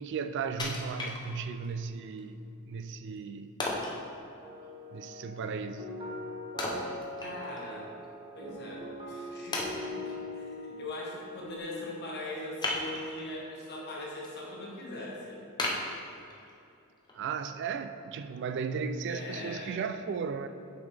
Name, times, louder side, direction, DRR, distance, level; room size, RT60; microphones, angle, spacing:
voice 1, 0.0-3.6 4.9-6.0 17.1-20.5, right 5 dB, 55° right, 10 dB, 0.3 m, -35 dB
Wood, 0.6-1.7 2.2-2.3 3.6-4.0 6.6-7.7 8.0-8.1 8.8-8.9 9.5-10.2 12.6-13.3 13.8-14.3 14.7-14.8 15.6-16.6 17.1-17.2, left 2 dB, 20° left, 0.8 m, -35 dB
sound 1, 4.4-11.6, left 1 dB, 25° right, 0.8 m, -42 dB
voice 2, 7.2-7.9 8.3-15.4 19.1-19.8, left 1 dB, 50° left, -3 dB, 1.3 m, -41 dB
7.1 x 5.6 x 3.4 m, 2.6 s
head